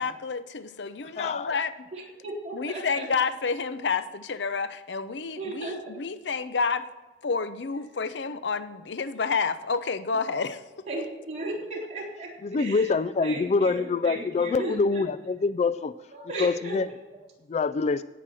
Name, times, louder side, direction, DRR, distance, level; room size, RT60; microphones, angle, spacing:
voice 1, 0.0-1.9 2.5-6.9 7.2-10.9, left 5 dB, 75° left, 13 dB, 0.6 m, -29 dB
voice 2, 1.2-1.5 12.4-16.0 16.4-16.9 17.5-18.0, left 4 dB, 40° left, 15 dB, 0.3 m, -25 dB
voice 3, 1.9-3.1 5.4-6.0 10.9-12.9 13.2-15.0 16.1-16.8, right 2 dB, 40° right, -4 dB, 3.7 m, -36 dB
16.5 x 6.0 x 6.2 m, 1.2 s
head